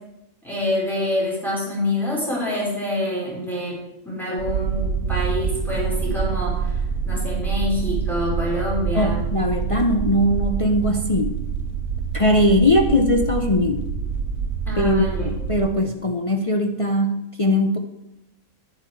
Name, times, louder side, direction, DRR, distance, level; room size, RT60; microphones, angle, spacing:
voice 1, 0.4-3.8 4.0-6.8 7.0-9.2 14.7-15.3, left 1 dB, ahead, -7 dB, 4.6 m, -26 dB
sound 1, 4.4-15.6, right 6 dB, 70° right, 1.4 m, -26 dB
voice 2, 8.9-11.4 12.1-13.9 14.8-17.8, left 1 dB, 40° left, 4 dB, 0.4 m, -20 dB
10.0 x 9.5 x 4.6 m, 0.91 s
omnidirectional pair, 1.5 m